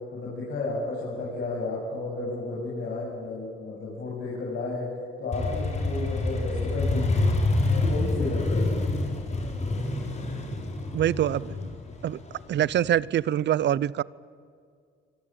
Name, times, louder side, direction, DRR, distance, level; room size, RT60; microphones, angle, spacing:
voice 1, 0.1-7.2 7.7-8.9, left 3 dB, 60° left, -4 dB, 7.7 m, -32 dB
Motorcycle, 5.3-13.0, left 2 dB, 35° left, 4.5 m, -27 dB
voice 2, 10.9-11.6 12.0-12.2 12.5-14.0, right 11 dB, 60° right, 21 dB, 0.7 m, -24 dB
25.5 x 24.5 x 8.8 m, 2.2 s
cardioid pair, 90°, 20 cm